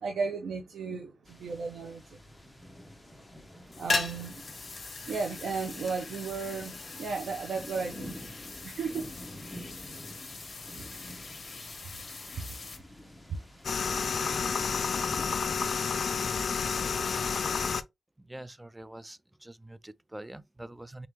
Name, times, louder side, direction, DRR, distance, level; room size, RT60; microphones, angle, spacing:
voice 1, 0.0-2.0 3.8-4.4 5.1-8.2 8.6-9.1 12.4-12.5, right 4 dB, 80° right, 0.7 m, -34 dB
sound 1, 1.3-15.8, left 1 dB, 5° left, 0.9 m, -48 dB
sound 2, 3.7-12.8, left 3 dB, 40° left, 1.0 m, -39 dB
sound 3, 13.6-17.8, left 5 dB, 60° left, 0.4 m, -30 dB
voice 2, 18.2-21.1, right 1 dB, 10° right, 0.3 m, -45 dB
3.8 x 3.5 x 3.0 m
cardioid pair, 85°, 0 cm